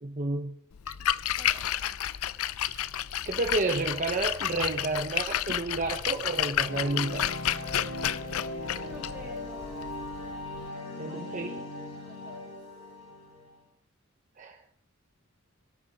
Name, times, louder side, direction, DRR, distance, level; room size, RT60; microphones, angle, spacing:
voice 1, 0.0-0.5 2.7-2.9 3.2-7.3 11.0-11.5 14.4-14.6, right 3 dB, 35° right, 5 dB, 1.0 m, -31 dB
Splash splatter, 0.7-10.7, left 11 dB, 85° left, 0.5 m, -31 dB
sound 1, 6.6-13.5, left 2 dB, 70° left, 5.7 m, -39 dB
voice 2, 8.8-10.1 11.0-12.5, right 1 dB, 10° right, -3 dB, 3.8 m, -50 dB
22.0 x 13.0 x 4.1 m, 0.66 s
head